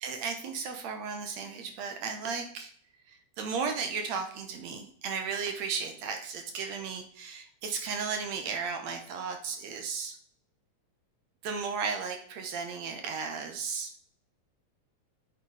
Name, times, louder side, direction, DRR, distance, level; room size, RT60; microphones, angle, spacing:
voice 1, 0.0-2.7 3.1-10.2 11.4-13.9, right 5 dB, 65° right, 5 dB, 2.1 m, -35 dB
8.4 x 8.3 x 4.9 m, 0.63 s
omnidirectional pair, 3.6 m